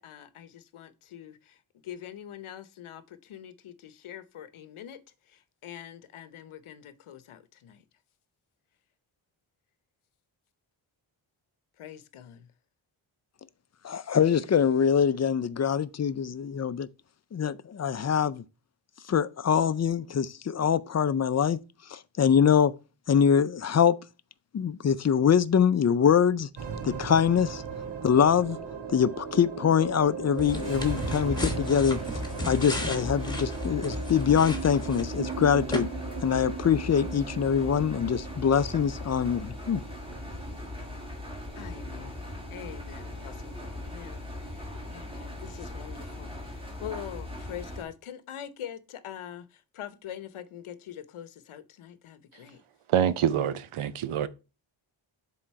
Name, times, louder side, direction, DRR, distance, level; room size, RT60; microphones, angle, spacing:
voice 1, 0.0-5.0 5.3-7.8 11.8-12.5 41.5-52.6, left 10 dB, 85° left, 0.8 m, -44 dB
voice 2, 13.8-16.9 17.3-18.4 19.1-21.6 21.9-22.7 23.1-24.0 24.5-26.5 26.8-27.6 28.0-28.6 28.9-32.0 32.4-35.9 36.2-39.8, left 7 dB, 35° left, 0.5 m, -24 dB
sound 1, 26.6-45.1, right 5 dB, 60° right, 1.8 m, -38 dB
sound 2, 30.4-35.3 35.7-35.8, left 1 dB, 10° left, 1.3 m, -36 dB
Engine, 30.5-47.8, left 1 dB, 10° right, 1.8 m, -39 dB
voice 3, 52.9-54.3, right 9 dB, 85° right, 0.7 m, -26 dB
7.4 x 3.9 x 4.6 m
cardioid pair, 85°, 48 cm